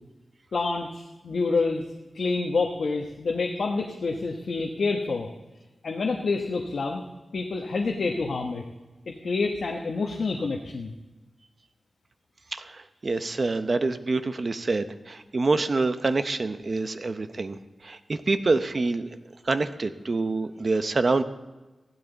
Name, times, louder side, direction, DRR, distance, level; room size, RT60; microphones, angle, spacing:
voice 1, 0.5-1.8 2.1-5.3 5.8-7.0 7.3-8.6 9.1-10.9, left 3 dB, 70° left, 2 dB, 1.0 m, -27 dB
voice 2, 12.5-17.6 17.8-19.0 19.5-21.2, right 3 dB, 45° right, 10 dB, 0.7 m, -26 dB
15.5 x 12.0 x 3.9 m, 1.2 s
wide cardioid pair, 115°, 0 cm